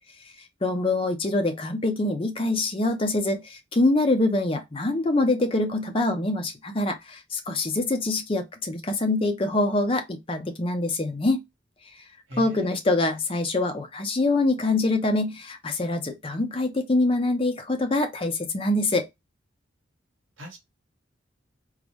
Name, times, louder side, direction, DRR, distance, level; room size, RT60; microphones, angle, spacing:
voice 1, 0.6-11.4 12.4-19.1, left 2 dB, 30° left, 0.5 m, -25 dB
voice 2, 12.3-12.7 20.4-20.6, equal, 85° right, 1.1 m, -39 dB
3.8 x 2.1 x 3.0 m
head